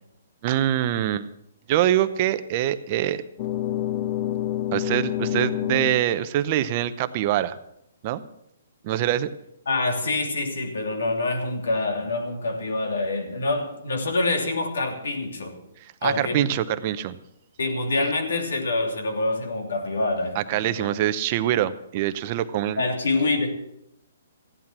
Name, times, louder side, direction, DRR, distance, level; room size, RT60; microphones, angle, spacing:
voice 1, 0.4-1.3 1.7-3.2 4.7-7.6 8.0-8.2 8.8-9.3 15.8-17.2 20.3-22.8, right 12 dB, 35° right, 12 dB, 0.8 m, -24 dB
sound 1, 3.4-6.1, left 12 dB, 40° left, 0.6 m, -27 dB
voice 2, 9.7-15.5 16.0-16.5 17.6-20.9 22.8-23.6, left 2 dB, 80° left, 4 dB, 3.1 m, -26 dB
15.0 x 11.0 x 6.0 m, 0.78 s
hypercardioid pair, 155°, 0 cm